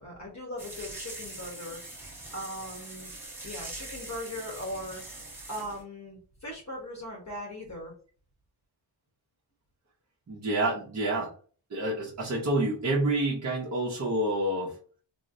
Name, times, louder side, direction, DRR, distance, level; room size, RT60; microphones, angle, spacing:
voice 1, 0.0-1.8 2.3-3.1 3.4-5.0 5.5-7.9, left 1 dB, 35° left, -1 dB, 0.8 m, -39 dB
sound 1, 0.6-5.8, right 2 dB, 5° right, 1.0 m, -43 dB
voice 2, 10.3-11.3 11.7-14.7, right 1 dB, 35° right, -6 dB, 0.7 m, -28 dB
3.9 x 2.0 x 2.5 m, 0.42 s
wide cardioid pair, 145°, 46 cm